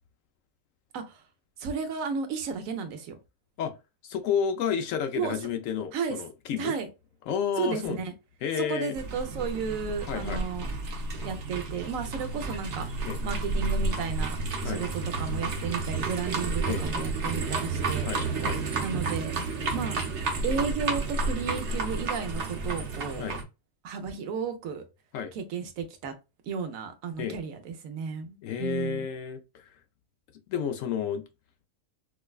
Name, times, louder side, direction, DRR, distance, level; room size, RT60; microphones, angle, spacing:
voice 1, 1.6-3.2 5.2-5.4 5.9-6.2 6.6-6.9 7.6-8.1 8.6-10.7 11.2-12.9 13.2-14.4 14.6-14.9 15.2-18.1 18.8-19.3 19.7-20.0 20.4-23.3 23.8-24.8 25.3-26.1 26.4-29.1, right 6 dB, 85° right, 1.1 m, -33 dB
voice 2, 4.0-6.7 7.3-8.0 8.4-8.9 10.1-10.4 13.0-13.2 14.6-14.8 16.7-16.8 18.0-18.6 23.2-23.4 25.1-25.3 27.2-27.4 28.4-29.8 30.5-31.2, left 8 dB, 80° left, 1.0 m, -31 dB
sound 1, 9.0-23.4, right 3 dB, 60° right, 1.0 m, -31 dB
4.6 x 2.2 x 2.3 m
omnidirectional pair, 1.4 m